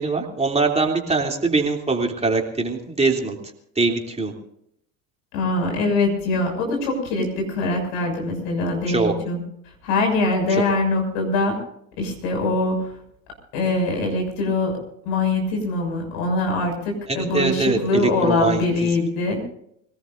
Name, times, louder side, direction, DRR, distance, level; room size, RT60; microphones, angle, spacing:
voice 1, 0.0-3.4 3.8-4.3 8.9-9.1 17.1-18.6, right 3 dB, 15° right, 1 dB, 3.1 m, -22 dB
voice 2, 5.3-9.4 9.8-11.6 12.0-12.9 13.5-14.8 15.0-19.5, left 2 dB, 65° left, 2 dB, 6.7 m, -23 dB
25.0 x 18.0 x 2.6 m, 0.72 s
hypercardioid pair, 75°, 40 cm